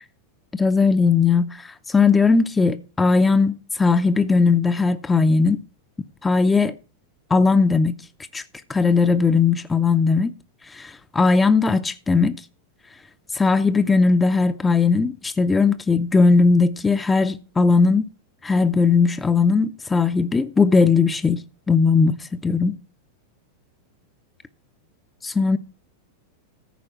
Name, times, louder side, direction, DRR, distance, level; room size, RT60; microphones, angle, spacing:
voice 1, 0.5-5.6 6.2-6.7 7.3-7.9 8.3-8.4 8.7-10.3 10.7-12.4 13.3-18.1 18.4-22.8 25.2-25.6, left 4 dB, 15° left, 0.5 m, -18 dB
14.5 x 4.8 x 5.9 m
figure-of-eight pair, 90°, 0 cm